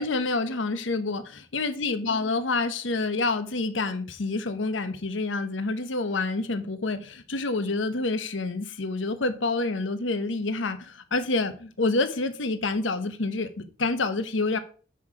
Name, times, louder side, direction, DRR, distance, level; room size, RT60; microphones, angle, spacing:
voice 1, 0.0-14.6, left 3 dB, 75° left, 1.0 m, -28 dB
6.9 x 5.7 x 4.9 m
head